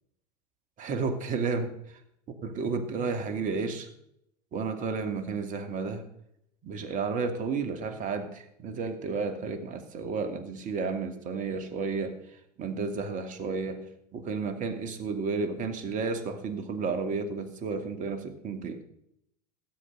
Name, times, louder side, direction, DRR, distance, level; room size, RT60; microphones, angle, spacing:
voice 1, 0.8-1.7 2.4-3.9 4.5-6.0 6.6-12.2 12.6-13.9 14.1-18.8, right 4 dB, 40° right, 8 dB, 2.6 m, -32 dB
17.5 x 7.9 x 6.7 m, 0.75 s
hypercardioid pair, 90°, 21 cm